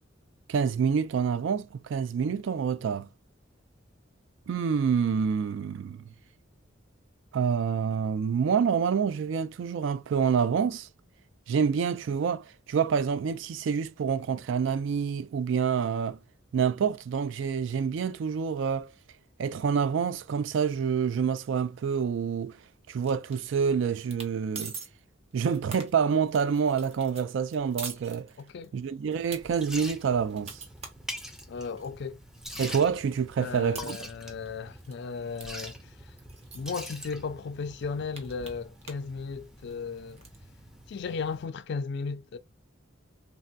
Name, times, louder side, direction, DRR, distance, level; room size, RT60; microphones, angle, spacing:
voice 1, 0.5-3.1 4.5-6.1 7.3-10.9 11.5-16.2 16.5-18.9 19.4-22.6 22.9-24.7 25.3-28.3 28.7-30.6 32.6-34.0, right 6 dB, 65° right, 0.3 m, -27 dB
sound 1, 23.0-23.7 24.0-24.3 24.5-24.9 25.3-28.7 29.1-29.4 29.9-31.9 32.4-32.5 32.7-34.5 34.8-35.0 35.4-35.5 35.7-35.8 36.2-36.8 37.3-37.4 37.7-39.1 39.4-40.4, right 4 dB, 30° right, 0.8 m, -44 dB
voice 2, 28.4-28.7 31.5-32.2 33.4-35.8 36.5-40.2 40.9-42.4, left 5 dB, 60° left, 0.3 m, -35 dB
Liquid, 29.1-41.5, equal, ahead, 0.5 m, -45 dB
3.2 x 2.7 x 2.2 m
head